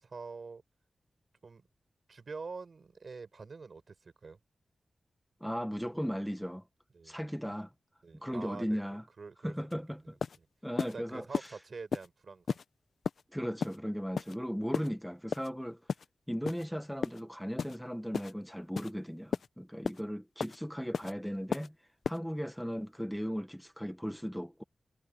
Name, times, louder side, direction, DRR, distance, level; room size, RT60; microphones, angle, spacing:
voice 1, 0.0-0.6 1.4-1.7 2.1-4.4 6.9-7.2 8.0-8.8 9.2-10.5 10.9-12.6, right 4 dB, 60° right, 5.5 m, -46 dB
voice 2, 5.4-6.6 7.0-7.7 8.2-9.0 9.4-10.2 10.6-11.6 13.3-15.8 16.3-21.7 22.1-24.6, equal, ahead, 0.9 m, -37 dB
sound 1, 9.7-9.8 10.2-10.4 10.8-10.9 11.3-11.5 11.9-12.1 12.5-12.6 13.0-13.2 13.6-13.8 14.2-14.4 14.7-14.9 15.3-15.5 15.9-16.1 16.5-16.6 17.0-17.2 17.6-17.8 18.1-18.3 18.8-18.9 19.3-19.5 19.8-20.0 20.4-20.6 20.9-21.1 21.5-21.7 22.0-22.2, left 6 dB, 80° left, 0.6 m, -34 dB
wide cardioid pair, 80°, 0 cm